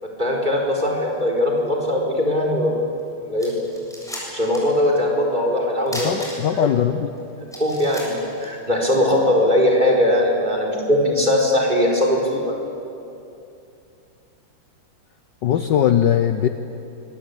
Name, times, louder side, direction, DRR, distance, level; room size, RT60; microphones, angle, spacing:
voice 1, 0.0-2.7 3.2-3.5 4.3-6.1 7.6-12.5, left 1 dB, 20° right, -1 dB, 4.8 m, -20 dB
sound 1, 3.0-3.1 3.4-4.7 5.0-5.1 5.9-6.7 7.1-7.2 7.5-9.0, equal, ahead, 7.3 m, -35 dB
voice 2, 5.9-7.1 15.4-16.5, left 9 dB, 60° left, 8 dB, 1.4 m, -20 dB
25.5 x 23.0 x 8.6 m, 2.7 s
omnidirectional pair, 2.4 m